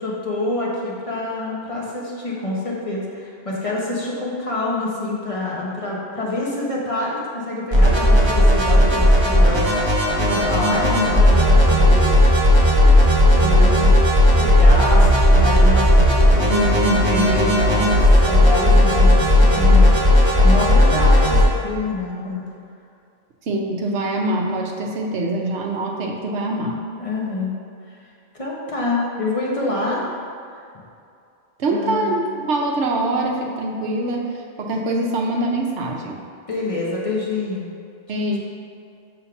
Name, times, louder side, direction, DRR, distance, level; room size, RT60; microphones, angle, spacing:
voice 1, 0.0-12.2 12.7-12.9 13.3-13.9 14.4-22.4 27.0-27.5 27.9-28.0 28.3-30.1 31.7-32.1 36.5-37.7 38.1-38.4, left 2 dB, 30° left, -5 dB, 1.1 m, -26 dB
sound 1, 7.7-21.4, left 1 dB, 25° right, 1.0 m, -14 dB
voice 2, 23.5-26.8 31.6-36.2 38.1-38.4, right 2 dB, 70° right, 1 dB, 1.1 m, -24 dB
5.5 x 3.5 x 5.7 m, 2.4 s
omnidirectional pair, 1.3 m